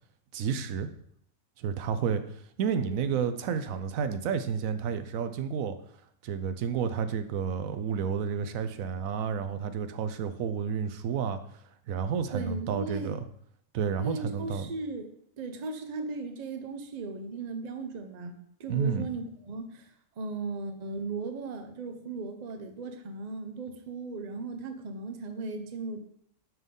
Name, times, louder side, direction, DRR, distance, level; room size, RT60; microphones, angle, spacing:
voice 1, 0.3-0.9 1.6-2.2 2.6-5.8 6.2-11.4 11.9-13.2 13.7-14.7 18.7-19.1, right 7 dB, 85° right, 10 dB, 1.0 m, -30 dB
voice 2, 12.3-13.2 14.0-15.1 15.4-26.0, right 3 dB, 40° right, 6 dB, 0.6 m, -37 dB
6.0 x 5.5 x 3.7 m, 0.68 s
omnidirectional pair, 1.4 m